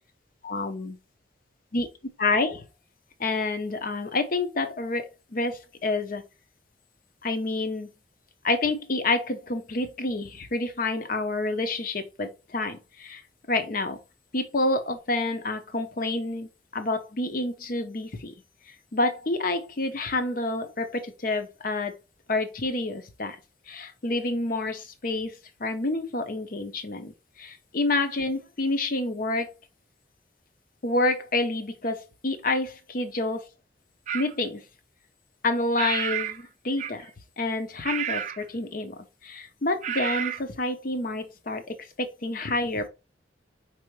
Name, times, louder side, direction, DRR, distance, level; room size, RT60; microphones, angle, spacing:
voice 1, 0.4-1.0 1.7-1.9 2.2-2.6 3.2-6.2 7.2-7.9 8.4-13.2 13.5-14.0 14.3-18.3 18.9-21.9 22.3-23.4 23.7-27.1 27.4-29.5 30.8-33.5 34.1-34.6 35.4-37.1 37.4-42.9, left 2 dB, 50° left, 0.7 m, -28 dB
sound 1, 34.1-34.3 35.8-36.4 36.8-37.1 37.8-38.4 39.8-40.4, right 9 dB, 40° right, 0.4 m, -30 dB
4.9 x 3.4 x 3.1 m
head